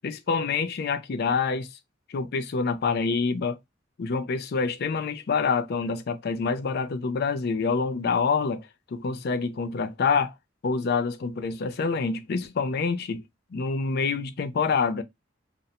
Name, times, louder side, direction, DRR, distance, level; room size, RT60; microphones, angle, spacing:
voice 1, 0.0-1.7 2.1-3.6 4.0-10.3 10.6-13.2 13.5-15.0, left 5 dB, 55° left, 0.4 m, -26 dB
2.5 x 2.0 x 2.8 m
head